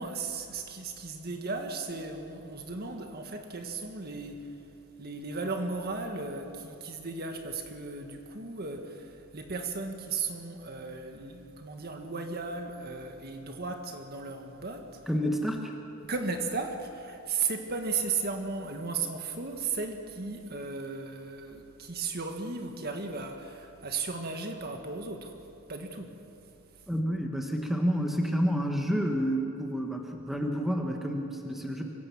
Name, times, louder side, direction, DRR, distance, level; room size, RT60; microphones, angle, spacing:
voice 1, 0.0-4.6 5.0-15.0 16.0-25.3 25.7-26.2, right 4 dB, 45° right, 4 dB, 1.7 m, -35 dB
voice 2, 15.1-15.7 26.9-31.8, equal, ahead, 2 dB, 1.5 m, -29 dB
25.0 x 16.5 x 7.3 m, 2.8 s
head